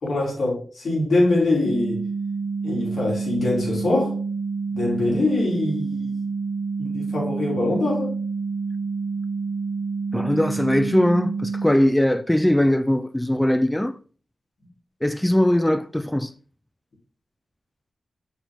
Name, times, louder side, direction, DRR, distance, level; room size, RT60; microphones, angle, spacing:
voice 1, 0.0-2.0 2.6-4.2 4.7-6.2 6.8-8.1, left 2 dB, 80° left, 3.5 m, -23 dB
sound 1, 1.6-11.6, right 4 dB, 45° right, 0.9 m, -28 dB
voice 2, 10.1-14.0 15.0-16.3, left 1 dB, 10° left, 0.3 m, -20 dB
6.6 x 4.6 x 3.8 m
wide cardioid pair, 90°, 0 cm